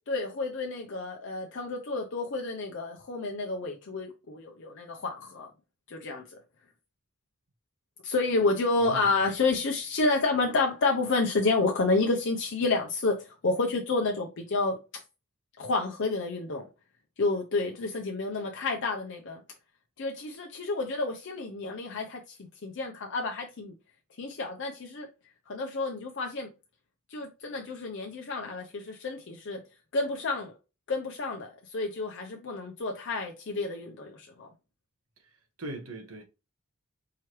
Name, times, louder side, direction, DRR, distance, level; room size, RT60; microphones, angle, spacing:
voice 1, 0.1-5.5 5.9-6.4 8.0-14.8 15.6-16.6 17.2-19.4 20.0-23.7 24.2-25.1 25.5-26.5 27.1-29.6 29.9-30.5 30.9-34.5, left 3 dB, 55° left, 0.6 m, -30 dB
voice 2, 8.8-9.1 35.6-36.2, right 2 dB, 80° right, 1.2 m, -39 dB
4.6 x 3.0 x 3.1 m
head